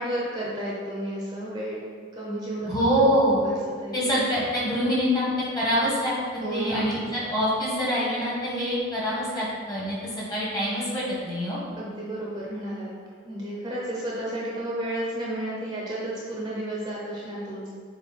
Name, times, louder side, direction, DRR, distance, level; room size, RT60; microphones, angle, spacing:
voice 1, 0.0-1.8 2.1-2.7 3.4-4.0 6.4-6.9 11.8-12.9 13.2-17.7, right 1 dB, 20° right, -5 dB, 0.8 m, -32 dB
voice 2, 2.7-3.5 3.9-5.3 5.5-6.1 6.5-11.6, equal, 20° left, -6 dB, 1.5 m, -25 dB
7.1 x 3.3 x 4.2 m, 2.1 s
head